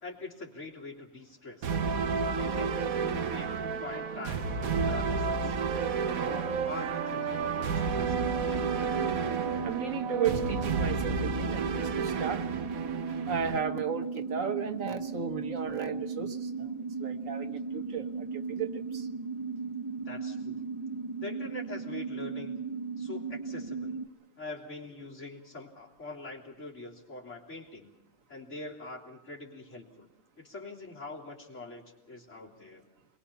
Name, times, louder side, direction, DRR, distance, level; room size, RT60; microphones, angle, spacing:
voice 1, 0.0-1.7 2.3-5.5 6.2-8.7 20.1-20.6 21.2-22.6 23.0-24.0 24.4-27.9 28.3-30.1 30.4-32.8, left 2 dB, 60° left, -2 dB, 3.7 m, -44 dB
sound 1, 1.6-13.6, right 5 dB, 90° right, 1.5 m, -31 dB
sound 2, 8.0-24.1, right 4 dB, 25° right, 1.4 m, -36 dB
voice 2, 9.6-12.5 13.3-16.7 17.0-19.1, right 7 dB, 70° right, 8 dB, 1.7 m, -35 dB
27.5 x 22.0 x 5.8 m, 0.90 s
omnidirectional pair, 1.4 m